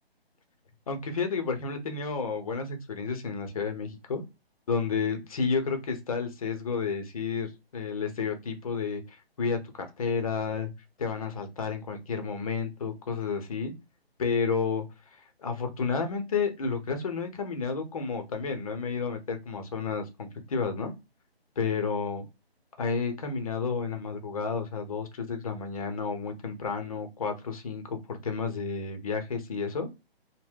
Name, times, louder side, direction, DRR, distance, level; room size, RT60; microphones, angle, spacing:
voice 1, 0.9-4.2 4.7-10.7 11.0-13.7 14.2-14.9 15.4-20.9 21.6-22.2 22.8-29.9, left 5 dB, 35° left, 6 dB, 0.7 m, -31 dB
2.6 x 2.1 x 3.6 m, 0.24 s
figure-of-eight pair, 150°, 32 cm